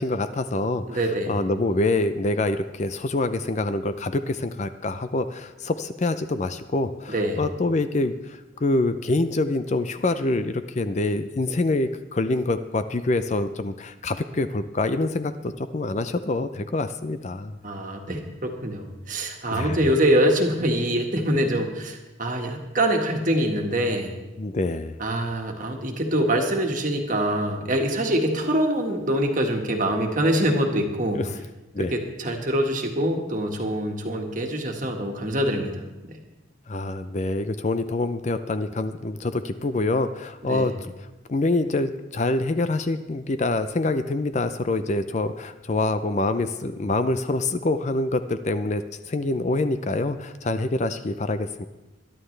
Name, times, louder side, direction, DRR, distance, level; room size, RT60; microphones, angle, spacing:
voice 1, 0.0-17.6 19.5-19.8 24.4-25.0 31.1-31.4 31.7-31.9 36.7-40.7 41.0-51.6, left 2 dB, 35° left, 11 dB, 0.5 m, -26 dB
voice 2, 0.9-1.4 7.1-7.5 17.6-24.2 25.0-31.2 31.8-35.8 36.1-36.2 40.5-40.7, right 1 dB, 40° right, 2 dB, 1.7 m, -24 dB
21.5 x 11.5 x 3.3 m, 1.1 s
head